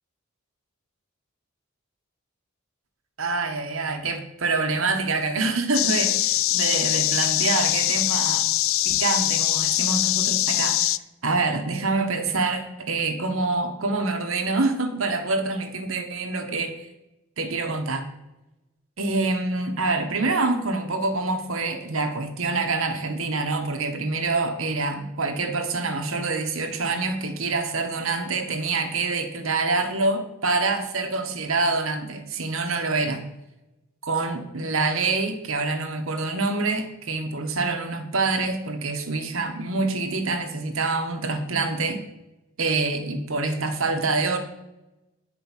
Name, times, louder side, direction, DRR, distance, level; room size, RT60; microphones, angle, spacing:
voice 1, 3.2-8.4 8.8-10.8 11.2-16.8 17.4-18.1 19.0-33.2 34.0-42.0 42.6-44.4, right 3 dB, 75° right, 5 dB, 1.4 m, -26 dB
sound 1, 5.7-11.0, left 15 dB, 70° left, 0.4 m, -23 dB
10.0 x 5.2 x 7.3 m, 0.95 s
head